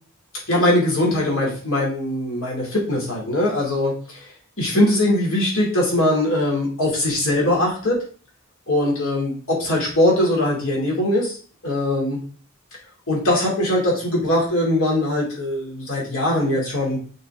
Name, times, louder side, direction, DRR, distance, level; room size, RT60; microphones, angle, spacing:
voice 1, 0.5-3.9 4.6-8.0 8.7-11.4 11.6-12.2 13.1-17.0, left 1 dB, 65° left, -3 dB, 2.9 m, -21 dB
6.3 x 4.3 x 3.7 m, 0.42 s
head